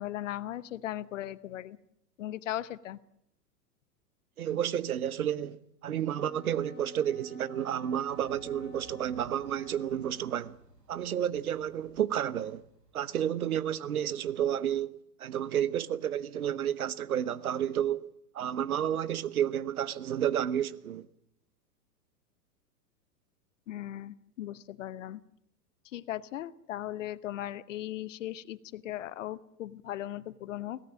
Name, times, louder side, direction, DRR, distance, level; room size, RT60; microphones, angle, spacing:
voice 1, 0.0-1.8 2.2-3.0 23.7-25.2 25.9-30.8, left 13 dB, 50° left, 0.9 m, -38 dB
voice 2, 4.4-5.6 5.8-10.6 10.9-12.6 12.9-18.1 18.3-21.1, right 10 dB, 65° right, 1.0 m, -31 dB
Wind instrument woodwind instrument, 6.1-10.4, left 4 dB, 75° left, 2.1 m, -51 dB
sound 1, 8.1-13.9, right 3 dB, 90° right, 2.2 m, -57 dB
23.0 x 17.0 x 7.4 m
figure-of-eight pair, 100°, 48 cm